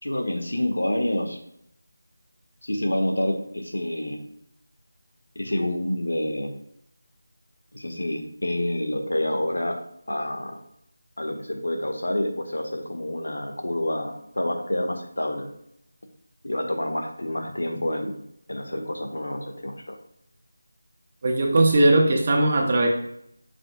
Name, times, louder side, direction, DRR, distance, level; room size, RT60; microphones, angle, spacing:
voice 1, 0.0-1.4 2.6-4.2 5.3-6.6 7.7-9.8 10.1-10.6 11.2-15.5 16.4-18.2 18.5-20.0, left 1 dB, 85° left, 4 dB, 1.4 m, -28 dB
voice 2, 21.2-22.9, right 2 dB, 35° right, 1 dB, 1.2 m, -19 dB
7.4 x 6.0 x 2.3 m, 0.73 s
figure-of-eight pair, 170°, 0 cm